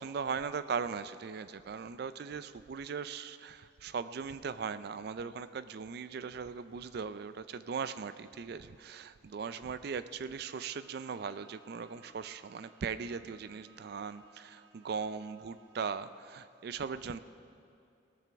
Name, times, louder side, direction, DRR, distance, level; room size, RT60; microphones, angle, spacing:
voice 1, 0.0-17.2, right 5 dB, 55° right, 13 dB, 0.4 m, -39 dB
Bowed string instrument, 10.6-16.3, right 5 dB, 70° right, 1.2 m, -63 dB
18.0 x 13.5 x 3.5 m, 2.5 s
head